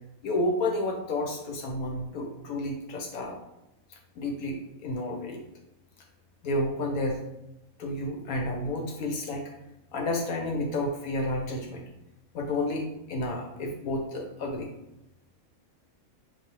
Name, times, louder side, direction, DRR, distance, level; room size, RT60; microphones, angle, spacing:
voice 1, 0.2-3.4 3.9-5.4 6.4-7.2 7.8-9.4 9.9-11.8 12.3-14.7, left 1 dB, 80° left, 1 dB, 1.2 m, -31 dB
4.8 x 2.7 x 2.9 m, 0.90 s
omnidirectional pair, 1.5 m